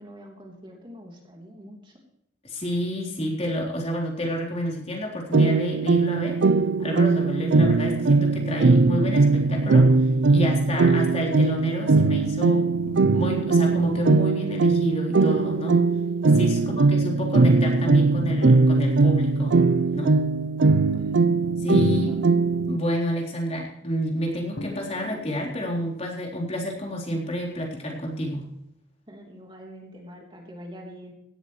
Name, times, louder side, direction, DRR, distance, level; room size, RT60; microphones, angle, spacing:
voice 1, 0.0-2.0 16.5-16.8 20.9-21.2 21.9-22.2 29.1-31.1, equal, 30° right, 0 dB, 3.4 m, -44 dB
voice 2, 2.4-6.4 6.8-15.8 16.3-19.6 19.9-20.1 21.6-22.1 22.7-28.5, equal, 35° left, -1 dB, 3.7 m, -29 dB
sound 1, 5.3-22.8, right 3 dB, 85° right, 0.5 m, -20 dB
Drum, 24.6-26.3, left 2 dB, 80° left, 0.9 m, -41 dB
17.5 x 13.0 x 3.2 m, 0.79 s
head